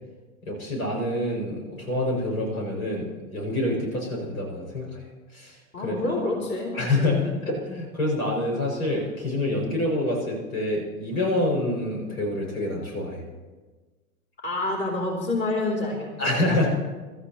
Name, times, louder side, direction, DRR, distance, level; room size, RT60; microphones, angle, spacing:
voice 1, 0.4-5.0 5.3-6.2 6.7-13.2 16.2-16.7, left 1 dB, 75° left, -2 dB, 6.5 m, -27 dB
voice 2, 5.7-7.3 14.4-16.1 16.5-16.7, left 2 dB, 25° left, 0 dB, 3.6 m, -28 dB
26.5 x 13.5 x 3.1 m, 1.3 s
hypercardioid pair, 95°, 43 cm